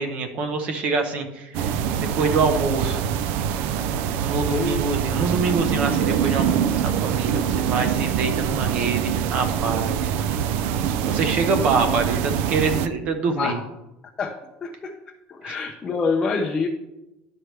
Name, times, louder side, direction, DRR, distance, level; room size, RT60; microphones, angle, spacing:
voice 1, 0.0-1.7 2.0-3.0 4.2-10.1 11.1-13.6 15.4-15.6, right 4 dB, 35° right, 7 dB, 0.8 m, -25 dB
sound 1, 1.5-12.9, right 8 dB, 55° right, 0.3 m, -24 dB
voice 2, 4.5-4.8 11.3-11.5 13.4-13.6 14.2-14.3 14.6-14.9 15.3-16.7, left 4 dB, 15° left, 1 dB, 0.5 m, -26 dB
11.5 x 4.7 x 3.3 m, 0.95 s
cardioid pair, 180°, 4 cm